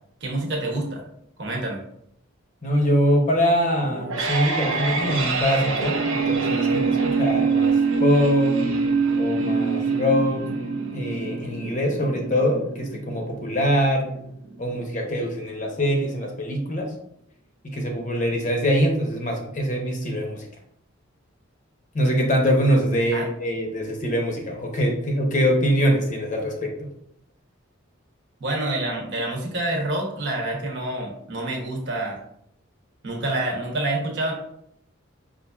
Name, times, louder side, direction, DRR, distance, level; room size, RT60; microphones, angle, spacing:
voice 1, 0.2-1.0 1.4-1.8 23.1-23.3 28.4-32.2 33.0-34.3, right 2 dB, 60° right, 0 dB, 0.9 m, -27 dB
voice 2, 2.6-8.5 9.2-10.4 10.9-14.1 14.6-16.9 17.6-20.5 21.9-26.7, equal, 40° left, 1 dB, 0.7 m, -23 dB
sound 1, 3.8-14.8, right 4 dB, 80° right, 0.6 m, -24 dB
5.4 x 2.5 x 2.3 m, 0.72 s
head